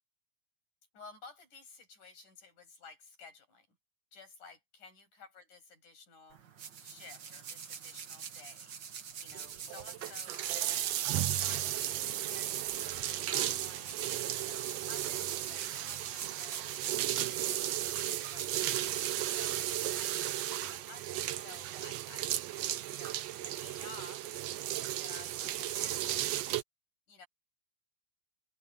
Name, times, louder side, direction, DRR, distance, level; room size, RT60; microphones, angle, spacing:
voice 1, 0.9-3.8 4.1-6.4 6.8-8.8 9.2-10.9 11.3-13.9 14.4-18.9 19.3-19.7 20.0-22.3 22.9-24.3 25.0-26.3 27.1-27.3, left 4 dB, 55° left, 9.6 m, -54 dB
sound 1, 6.3-19.9, right 7 dB, 60° right, 1.2 m, -46 dB
sound 2, 9.3-26.6, right 13 dB, 85° right, 1.4 m, -35 dB
open air
omnidirectional pair, 4.2 m